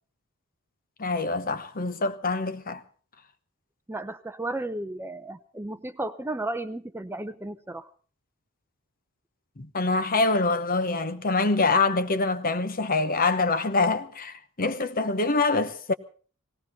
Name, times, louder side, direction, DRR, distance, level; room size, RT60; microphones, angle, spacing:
voice 1, 1.0-2.8 9.6-15.9, left 3 dB, 45° left, 1.0 m, -25 dB
voice 2, 3.9-7.9, right 2 dB, 10° right, 0.7 m, -34 dB
19.0 x 17.0 x 4.2 m
head